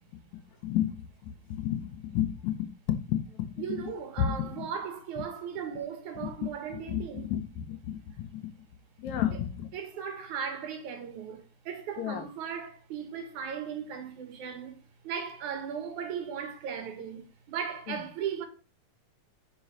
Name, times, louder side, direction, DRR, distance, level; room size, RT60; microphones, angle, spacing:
voice 1, 0.1-3.9 4.2-4.7 6.2-6.3 6.7-8.5 9.0-9.7 12.0-12.3 17.9-18.0, left 10 dB, 70° left, 2.0 m, -32 dB
voice 2, 3.6-7.2 9.7-14.8 15.0-18.5, right 7 dB, 70° right, 2.9 m, -37 dB
5.8 x 5.3 x 6.3 m
omnidirectional pair, 3.7 m